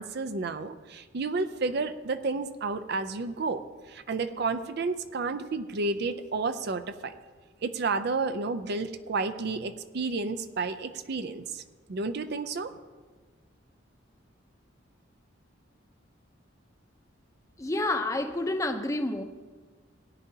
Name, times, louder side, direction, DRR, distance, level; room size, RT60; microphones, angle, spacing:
voice 1, 0.0-3.6 3.9-7.1 7.6-11.6 11.9-12.7, right 3 dB, 55° right, 10 dB, 0.5 m, -31 dB
voice 2, 17.6-19.2, left 2 dB, 15° left, 6 dB, 0.7 m, -29 dB
17.5 x 10.0 x 2.8 m, 1.4 s
head